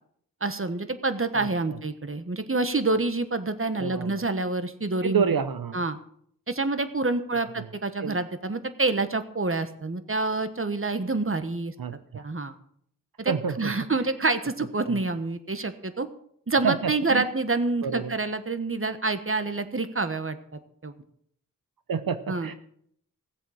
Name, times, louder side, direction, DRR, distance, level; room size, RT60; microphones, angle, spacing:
voice 1, 0.4-5.3 5.7-6.0 6.5-11.7 12.1-12.5 13.2-16.1 16.5-20.4 20.8-20.9 22.3-22.5, right 3 dB, 40° right, 10 dB, 1.3 m, -27 dB
voice 2, 1.3-1.8 3.8-4.2 5.0-5.8 7.6-7.7 8.0-8.2 11.8-12.2 13.3-13.7 14.8-15.0 16.6-17.3 17.8-18.2 21.9-22.5, right 6 dB, 85° right, 11 dB, 0.7 m, -29 dB
16.5 x 7.8 x 6.4 m, 0.66 s
wide cardioid pair, 45°, 34 cm